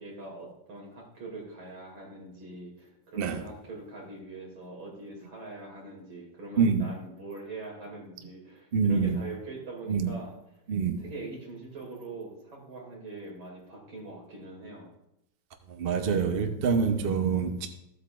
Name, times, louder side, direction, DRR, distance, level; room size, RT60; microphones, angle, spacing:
voice 1, 0.0-10.3 11.0-14.9, right 2 dB, 75° right, -2 dB, 3.6 m, -43 dB
voice 2, 6.6-6.9 8.7-9.2 9.9-10.1 10.7-11.0 15.7-17.7, right 5 dB, 50° right, 6 dB, 0.6 m, -26 dB
14.5 x 8.4 x 2.5 m, 0.83 s
omnidirectional pair, 2.2 m